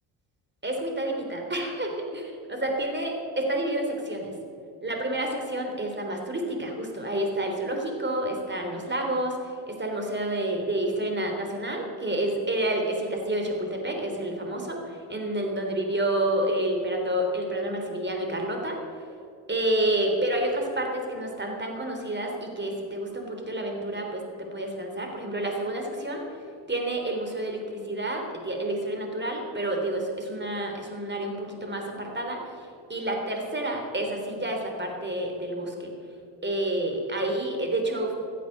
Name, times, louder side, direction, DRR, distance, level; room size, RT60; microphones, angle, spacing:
voice 1, 0.6-4.3 4.8-18.8 19.5-26.2 26.7-35.9 36.4-38.1, right 1 dB, 25° right, 2 dB, 3.6 m, -29 dB
15.0 x 8.4 x 6.7 m, 2.4 s
supercardioid pair, 65°, 42 cm